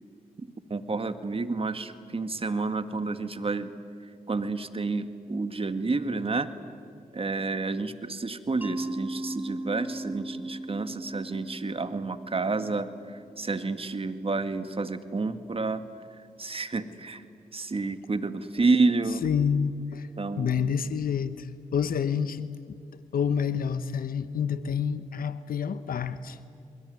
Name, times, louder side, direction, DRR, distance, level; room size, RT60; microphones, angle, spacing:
voice 1, 0.4-3.7 4.0-6.5 7.1-15.9 16.1-17.3 17.5-19.3 20.2-20.5, right 3 dB, 35° right, 10 dB, 2.0 m, -30 dB
Mallet percussion, 8.6-13.4, right 1 dB, 10° right, 1.7 m, -37 dB
voice 2, 19.2-20.1 20.4-22.8 23.1-26.4, left 7 dB, 70° left, 13 dB, 1.1 m, -28 dB
28.0 x 21.5 x 9.6 m, 2.3 s
supercardioid pair, 50°, 16 cm